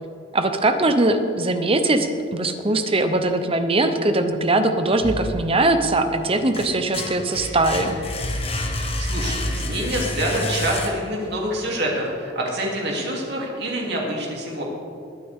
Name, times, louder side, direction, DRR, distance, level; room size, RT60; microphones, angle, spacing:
voice 1, 0.3-8.0, right 2 dB, 30° right, 8 dB, 0.8 m, -21 dB
sound 1, 5.0-5.9 6.3-11.3, left 1 dB, 30° left, 1.4 m, -28 dB
voice 2, 9.0-14.6, right 1 dB, 60° right, -2 dB, 3.0 m, -26 dB
21.0 x 9.3 x 3.7 m, 2.6 s
head